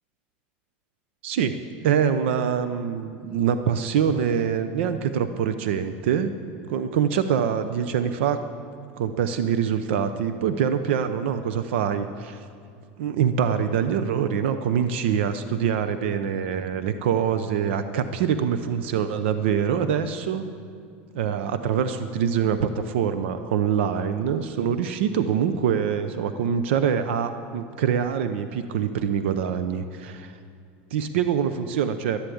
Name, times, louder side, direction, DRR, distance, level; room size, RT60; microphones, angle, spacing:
voice 1, 1.2-1.6 1.8-6.3 6.7-8.4 9.0-12.4 13.0-20.4 21.1-30.3 30.9-32.2, right 8 dB, 80° right, 10 dB, 0.6 m, -24 dB
11.5 x 11.5 x 8.5 m, 2.3 s
supercardioid pair, 180°, 6 cm